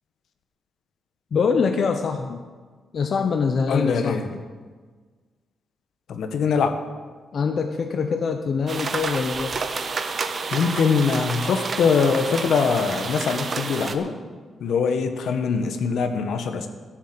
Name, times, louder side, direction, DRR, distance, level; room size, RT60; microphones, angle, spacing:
voice 1, 1.3-2.4 2.9-4.2 7.3-9.5, left 5 dB, 50° left, 5 dB, 0.7 m, -24 dB
voice 2, 3.7-4.4 6.1-6.8 10.5-14.1 14.6-16.7, left 5 dB, 75° left, 7 dB, 1.2 m, -22 dB
sound 1, 8.7-13.9, right 4 dB, 40° right, 0.9 m, -29 dB
12.5 x 7.4 x 7.7 m, 1.5 s
cardioid pair, 130°, 0 cm